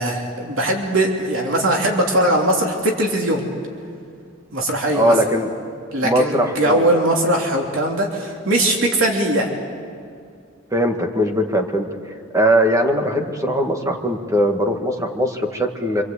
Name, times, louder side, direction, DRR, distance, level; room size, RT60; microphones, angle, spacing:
voice 1, 0.0-3.5 4.5-5.1 5.9-9.5, right 1 dB, 85° right, 0 dB, 3.3 m, -20 dB
voice 2, 4.9-5.5 6.0-7.0 10.7-11.9 12.3-16.0, equal, 15° right, 3 dB, 1.9 m, -20 dB
27.0 x 26.5 x 8.5 m, 2.3 s
head